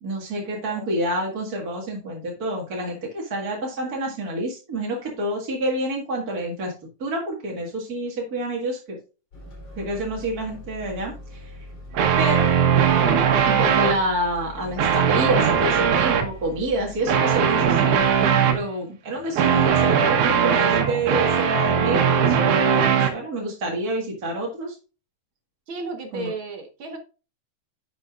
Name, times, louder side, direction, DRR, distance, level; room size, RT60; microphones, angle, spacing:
voice 1, 0.0-6.7 7.0-9.0 9.8-11.6 12.2-12.5 13.4-24.8 26.1-26.3, right 1 dB, 35° right, -2 dB, 1.9 m, -28 dB
voice 2, 0.5-0.9 25.7-27.0, right 4 dB, 50° right, 3 dB, 1.8 m, -34 dB
sound 1, 9.3-18.5, left 1 dB, 40° left, 4.0 m, -42 dB
sound 2, 11.9-14.0 14.6-16.3 17.1-18.6 19.4-23.1, right 7 dB, 90° right, 2.7 m, -19 dB
10.0 x 6.7 x 2.4 m, 0.32 s
omnidirectional pair, 3.3 m